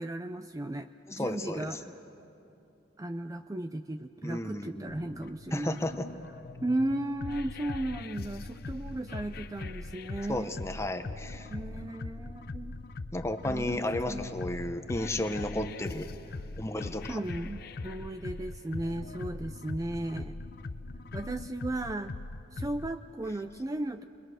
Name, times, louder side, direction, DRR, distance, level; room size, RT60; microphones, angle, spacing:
voice 1, 0.0-1.9 3.0-5.8 6.6-10.6 11.5-12.7 13.4-14.3 16.3-16.4 17.1-20.4 21.1-22.2 22.5-24.0, right 1 dB, 20° right, 8 dB, 0.4 m, -35 dB
voice 2, 1.1-1.7 4.2-5.0 5.5-6.1 10.3-11.5 13.1-16.1 16.6-17.2, left 1 dB, 15° left, 7 dB, 0.9 m, -33 dB
sound 1, 4.9-22.9, left 3 dB, 55° left, 0.6 m, -41 dB
30.0 x 22.0 x 6.4 m, 2.9 s
head